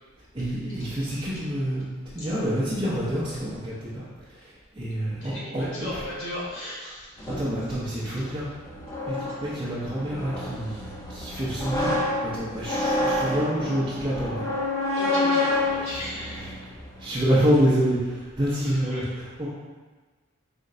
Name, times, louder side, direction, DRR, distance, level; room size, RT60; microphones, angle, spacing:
voice 1, 0.3-5.7 7.3-8.5 9.0-10.8 11.1-11.9 12.2-14.5 15.8-16.0 17.0-19.5, equal, 25° right, -10 dB, 0.7 m, -27 dB
voice 2, 5.2-7.3 8.5-8.6 8.9-9.0 9.2-9.6 15.0-16.4 18.8-19.1, left 1 dB, 75° left, -7 dB, 1.4 m, -37 dB
sound 1, 7.2-17.1, left 2 dB, 15° left, 0.4 m, -29 dB
4.3 x 2.2 x 3.7 m, 1.3 s
head